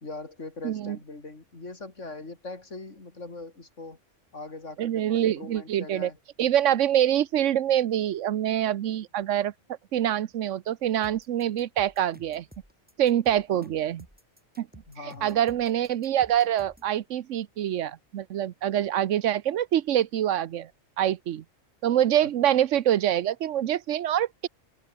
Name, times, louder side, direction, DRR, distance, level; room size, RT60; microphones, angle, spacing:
voice 1, 0.0-4.0 4.3-6.2 13.5-13.7 14.9-15.4 22.2-22.3, left 3 dB, 80° left, 4.1 m, -41 dB
voice 2, 0.6-1.0 4.8-6.1 6.4-9.5 9.9-12.4 13.0-14.1 14.6-14.7 15.2-20.7 21.0-21.4 21.8-24.5, right 11 dB, 80° right, 1.1 m, -25 dB
sound 1, 11.0-16.9, equal, 5° right, 7.7 m, -53 dB
omnidirectional pair, 1.3 m